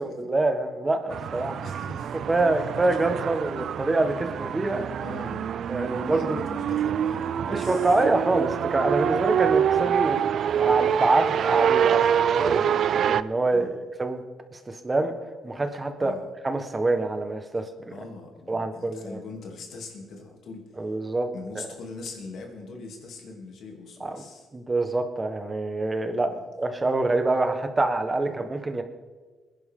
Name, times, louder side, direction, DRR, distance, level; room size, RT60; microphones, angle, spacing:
voice 1, 0.0-1.6 2.3-4.8 5.7-6.4 7.5-12.6 13.1-14.2 14.5-15.2 15.4-16.1 16.4-17.7 18.5-19.2 20.8-21.3 21.5-21.7 24.0-24.3 24.5-28.8, right 2 dB, 20° right, 7 dB, 1.5 m, -26 dB
sound 1, 1.1-13.2, right 9 dB, 65° right, 0.4 m, -25 dB
voice 2, 1.4-2.2 2.6-2.8 3.0-3.3 5.0-5.5 5.9-7.9 9.1-9.4 12.5-12.9 13.4-13.8 16.0-16.3 17.9-20.9 21.3-24.5 26.1-26.2 28.2-28.5, left 3 dB, 70° left, 1 dB, 3.1 m, -42 dB
21.0 x 10.5 x 3.9 m, 1.4 s
cardioid pair, 90°, 0 cm